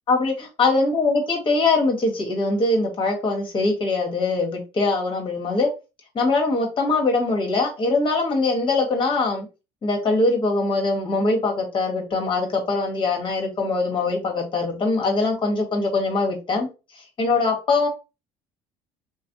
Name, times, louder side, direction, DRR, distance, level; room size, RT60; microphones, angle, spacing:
voice 1, 0.1-5.7 6.1-9.5 9.8-16.7 17.2-17.9, left 3 dB, 40° left, 1 dB, 1.4 m, -22 dB
3.2 x 2.3 x 2.6 m, 0.29 s
supercardioid pair, 90°, 13 cm